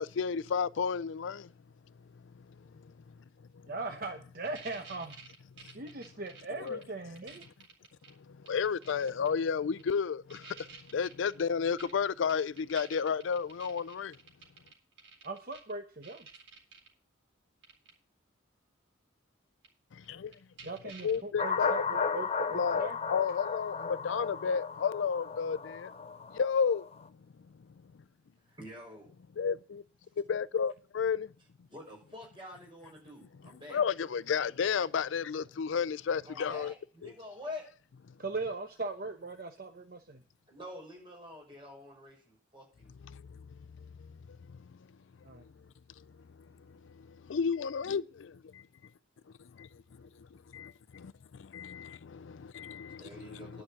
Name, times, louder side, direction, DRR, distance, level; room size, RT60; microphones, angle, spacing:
voice 1, 0.0-1.5 6.6-6.8 8.3-10.7 10.9-14.2 19.9-20.3 21.0-22.1 22.5-25.9 26.3-26.8 29.4-29.8 30.3-31.3 33.7-36.7 37.0-37.1 43.1-43.4 47.1-48.6 49.6-49.7 50.0-50.3 50.5-53.0 53.3-53.6, left 6 dB, 80° left, 0.4 m, -32 dB
voice 2, 3.7-5.1 5.7-7.4 15.2-16.3 20.6-23.0 38.2-40.2 45.2-45.4, right 3 dB, 50° right, 0.9 m, -39 dB
sound 1, 4.5-6.8 7.2-8.1 8.5-9.3 9.8-9.9 10.3-15.7 16.0-16.9 17.6-17.9 19.6-19.7 20.0-20.1 20.3-21.2, right 5 dB, 75° right, 3.9 m, -51 dB
sound 2, 21.4-27.0, left 5 dB, 30° left, 0.6 m, -35 dB
voice 3, 28.5-29.1 31.7-33.8 36.2-37.7 40.5-42.9 53.0-53.6, left 1 dB, 25° right, 6.3 m, -47 dB
11.0 x 6.0 x 7.4 m
head